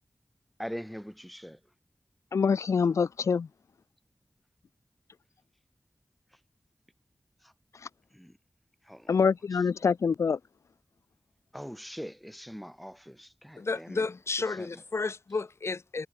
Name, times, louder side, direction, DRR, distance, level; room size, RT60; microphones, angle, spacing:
voice 1, 0.6-1.6 8.1-8.3 8.9-9.2 11.5-14.1 14.6-14.7, equal, ahead, 1.7 m, -42 dB
voice 2, 2.3-3.5 9.1-10.4, left 5 dB, 90° left, 0.5 m, -25 dB
voice 3, 13.6-16.1, left 3 dB, 60° left, 1.0 m, -32 dB
cardioid pair, 45°, 5 cm